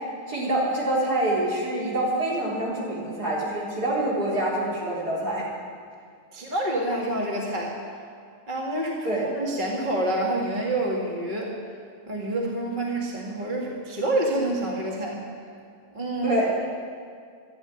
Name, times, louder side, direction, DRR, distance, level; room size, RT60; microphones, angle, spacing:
voice 1, 0.3-5.4 9.0-9.2 16.2-16.5, right 1 dB, 75° right, -6 dB, 4.5 m, -26 dB
voice 2, 6.3-7.8 8.5-11.6 12.1-15.2 15.9-16.4, right 1 dB, 30° right, -2 dB, 2.0 m, -27 dB
12.5 x 11.0 x 9.9 m, 2.2 s
omnidirectional pair, 1.7 m